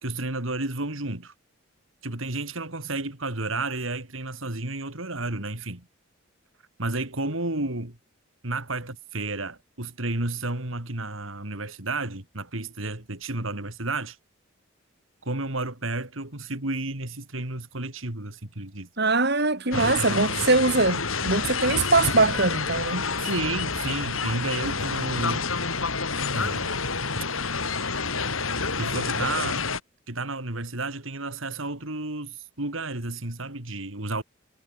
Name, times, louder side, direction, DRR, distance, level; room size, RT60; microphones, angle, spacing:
voice 1, 0.0-1.3 2.0-5.8 6.8-7.9 8.4-14.2 15.2-18.9 19.7-20.4 23.2-25.5 26.3-26.8 28.8-29.6 30.1-34.2, right 2 dB, 75° right, 3.5 m, -31 dB
voice 2, 19.0-23.0, right 3 dB, 55° right, 4.1 m, -22 dB
sound 1, 19.7-29.8, left 4 dB, 85° left, 5.1 m, -28 dB
head